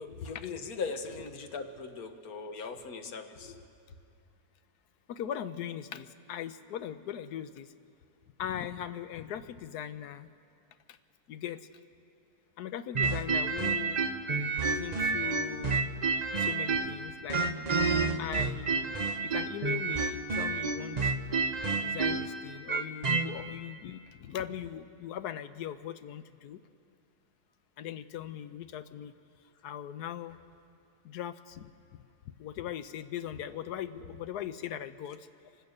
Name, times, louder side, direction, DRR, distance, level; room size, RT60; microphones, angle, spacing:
voice 1, 0.0-3.7 33.9-34.2, left 4 dB, 70° left, 7 dB, 1.6 m, -39 dB
voice 2, 5.1-7.7 8.4-10.3 11.3-11.6 12.6-14.1 14.7-15.8 16.4-17.4 18.2-18.8 19.2-21.1 21.7-26.6 27.8-29.1 29.6-30.4 31.0-31.7 32.4-35.2, left 10 dB, 85° left, 12 dB, 1.3 m, -39 dB
Circus theme, 12.9-17.0 17.3-23.3, right 4 dB, 35° right, 0.7 m, -29 dB
26.0 x 16.0 x 6.6 m, 2.5 s
omnidirectional pair, 1.7 m